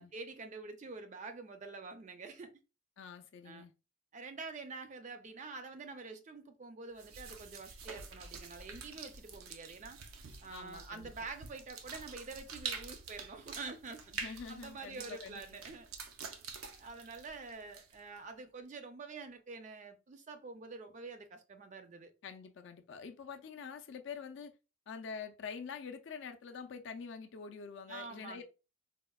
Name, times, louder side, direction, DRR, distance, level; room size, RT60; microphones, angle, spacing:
voice 1, 0.0-2.5 3.4-3.7 4.1-10.0 10.4-14.1 14.5-15.9 16.8-22.1 27.9-28.4, right 4 dB, 35° right, 0.4 m, -47 dB
voice 2, 3.0-3.7 10.5-11.3 14.1-15.6 22.2-24.5 24.9-28.4, left 6 dB, 60° left, 0.4 m, -46 dB
sound 1, 7.0-18.2, right 5 dB, 90° right, 0.6 m, -47 dB
4.1 x 2.1 x 2.2 m
head